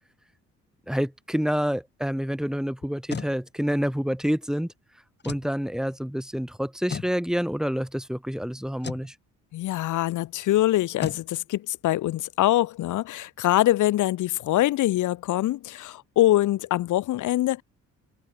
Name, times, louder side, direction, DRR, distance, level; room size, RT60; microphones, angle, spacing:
voice 1, 0.9-4.7 5.2-9.1, equal, ahead, 6.7 m, -28 dB
sound 1, 2.8-3.3 5.2-5.5 6.9-7.1 8.8-9.1 11.0-11.2, left 6 dB, 35° left, 1.8 m, -34 dB
voice 2, 9.5-17.6, left 15 dB, 80° left, 1.3 m, -24 dB
cardioid pair, 90°, 30 cm